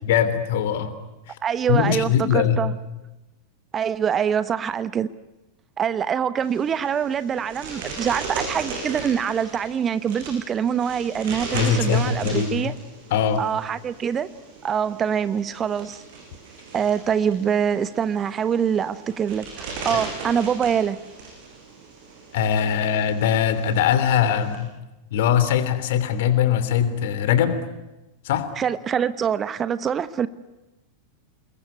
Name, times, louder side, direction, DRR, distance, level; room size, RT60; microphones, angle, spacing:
voice 1, 0.0-0.9 1.3-1.4 1.7-2.7 11.5-12.7 13.1-13.4 19.9-20.0 22.3-24.7 25.1-27.6 28.2-28.5, left 8 dB, 55° left, 12 dB, 3.1 m, -21 dB
voice 2, 1.4-2.7 3.7-5.1 5.8-12.7 13.4-14.3 14.6-16.0 16.7-21.0 28.6-30.3, right 8 dB, 25° right, 15 dB, 1.0 m, -24 dB
sound 1, 6.4-24.6, right 4 dB, 50° right, 7.7 m, -37 dB
28.0 x 21.5 x 9.7 m, 1.0 s
figure-of-eight pair, 90°, 0 cm